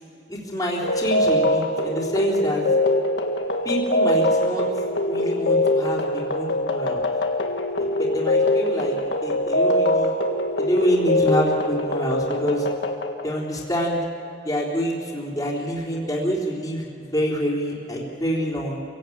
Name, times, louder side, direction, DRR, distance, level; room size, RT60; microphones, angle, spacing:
voice 1, 0.3-2.6 3.6-4.6 5.1-7.0 8.0-10.1 10.6-12.7 13.2-14.0 14.4-18.8, equal, 20° left, -5 dB, 3.9 m, -26 dB
sound 1, 0.8-13.4, left 1 dB, 65° left, 1.8 m, -23 dB
27.0 x 17.0 x 8.8 m, 2.3 s
head